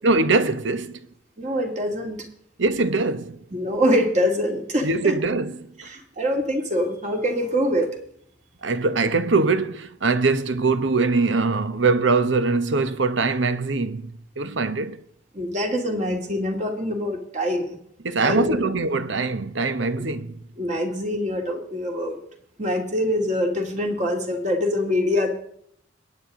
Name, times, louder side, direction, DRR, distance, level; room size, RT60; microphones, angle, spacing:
voice 1, 0.0-0.9 2.6-3.4 4.8-5.6 8.6-15.0 18.0-20.3, right 3 dB, 75° right, 1.0 m, -22 dB
voice 2, 1.4-2.2 3.5-5.2 5.8-7.9 15.3-17.8 18.2-18.6 20.6-22.2 22.6-25.3, equal, 40° right, 2.6 m, -24 dB
22.0 x 9.4 x 3.8 m
head